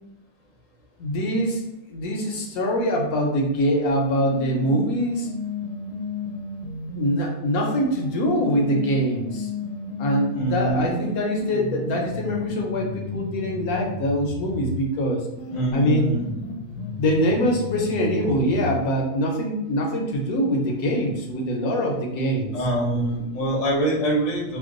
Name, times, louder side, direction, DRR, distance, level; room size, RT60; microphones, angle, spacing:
voice 1, 1.0-1.6 1.9-5.3 6.9-9.5 10.0-15.3 15.7-16.1 17.0-22.7, equal, 70° left, 0 dB, 1.0 m, -24 dB
sound 1, 3.9-7.2 7.9-14.9 15.4-18.9, left 3 dB, 90° left, 1.2 m, -33 dB
voice 2, 10.3-10.9 15.5-16.2 22.5-24.6, right 1 dB, 40° left, -2 dB, 0.6 m, -24 dB
2.9 x 2.2 x 3.6 m, 0.90 s
omnidirectional pair, 1.7 m